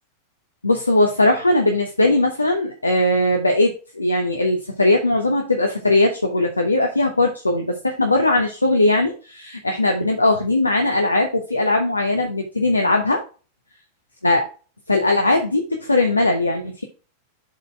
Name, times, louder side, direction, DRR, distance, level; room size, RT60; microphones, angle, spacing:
voice 1, 0.6-13.2 14.2-14.5 14.9-16.8, left 2 dB, 80° left, 3 dB, 1.0 m, -19 dB
7.3 x 4.2 x 4.5 m, 0.34 s
figure-of-eight pair, 90°, 0 cm